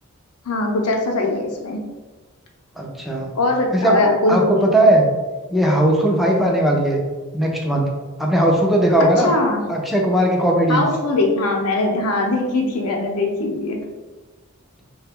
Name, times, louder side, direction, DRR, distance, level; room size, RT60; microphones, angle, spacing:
voice 1, 0.5-1.8 3.3-4.7 9.2-9.6 10.7-13.8, left 2 dB, 85° left, 1 dB, 0.6 m, -21 dB
voice 2, 2.8-3.3 3.7-5.0 5.5-7.0 7.3-7.9 8.2-9.3 9.7-10.9, right 1 dB, ahead, -1 dB, 0.4 m, -18 dB
3.2 x 2.2 x 3.5 m, 1.2 s
head